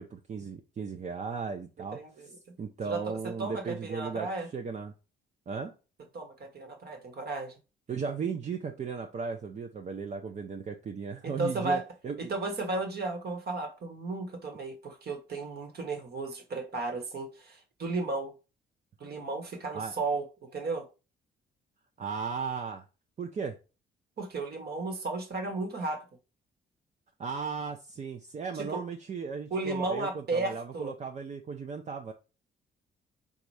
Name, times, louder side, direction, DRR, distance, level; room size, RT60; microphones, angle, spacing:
voice 1, 0.0-2.3 2.6-4.9 5.5-5.7 7.9-12.3 19.7-19.9 22.0-22.8 23.2-23.6 27.2-32.1, right 5 dB, 35° right, 0.5 m, -36 dB
voice 2, 1.9-2.3 2.8-4.5 6.1-7.5 11.2-11.8 12.2-18.3 19.0-20.3 20.5-20.8 24.2-26.0 28.6-28.8 29.5-30.9, right 3 dB, 55° right, 1.2 m, -34 dB
4.1 x 2.4 x 4.7 m
cardioid pair, 90°, 20 cm